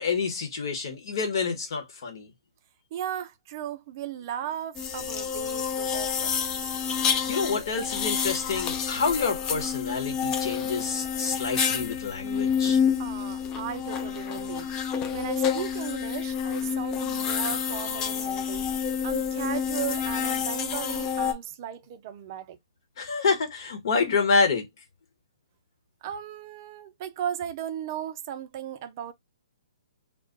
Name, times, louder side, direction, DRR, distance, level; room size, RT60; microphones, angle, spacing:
voice 1, 0.0-2.3 7.3-12.8 23.0-24.7, left 4 dB, 60° left, 1.1 m, -27 dB
voice 2, 2.9-6.5 13.0-14.7 15.1-22.6 26.0-29.1, right 10 dB, 40° right, 0.4 m, -36 dB
sound 1, 4.8-21.3, left 7 dB, 25° left, 0.5 m, -28 dB
2.3 x 2.2 x 3.7 m
hypercardioid pair, 140°, 3 cm